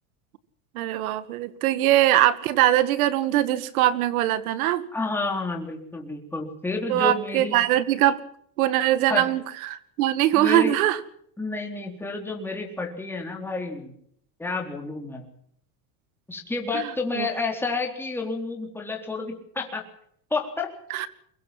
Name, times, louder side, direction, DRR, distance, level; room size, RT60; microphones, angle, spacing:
voice 1, 0.7-4.8 6.9-8.2 8.6-11.0 16.7-17.3 20.9-21.1, right 13 dB, 85° right, 15 dB, 2.1 m, -22 dB
voice 2, 4.9-7.6 9.1-9.3 10.3-10.7 11.4-13.9 14.4-15.3 16.3-19.8 20.3-20.7, left 3 dB, 5° left, 1 dB, 3.9 m, -30 dB
23.5 x 21.5 x 6.0 m, 0.67 s
supercardioid pair, 145°, 42 cm